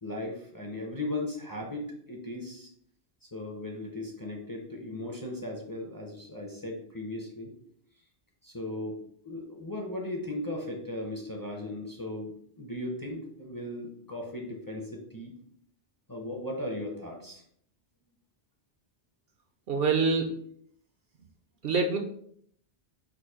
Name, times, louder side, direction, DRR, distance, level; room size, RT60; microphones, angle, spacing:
voice 1, 0.0-2.7 3.2-7.5 8.4-15.3 16.1-17.4, left 1 dB, 25° left, 0 dB, 0.6 m, -37 dB
voice 2, 19.7-20.4 21.6-22.0, right 4 dB, 65° right, 4 dB, 0.7 m, -25 dB
4.9 x 2.1 x 4.7 m, 0.65 s
omnidirectional pair, 1.1 m